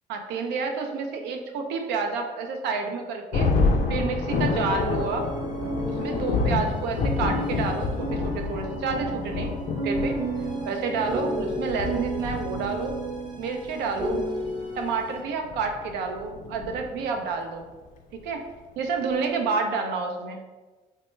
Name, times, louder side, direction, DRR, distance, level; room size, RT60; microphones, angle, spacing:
voice 1, 0.1-3.5 3.9-5.3 5.8-9.5 9.8-10.2 10.7-12.9 13.4-14.2 14.8-17.7 18.2-18.4 18.8-20.6, right 4 dB, 85° right, 4 dB, 0.5 m, -29 dB
Thunder, 3.3-17.3, left 4 dB, 55° left, 0.4 m, -29 dB
sound 1, 4.3-15.2, right 1 dB, 25° right, 0.6 m, -32 dB
3.1 x 2.1 x 3.1 m, 1.3 s
cardioid pair, 110°, 17 cm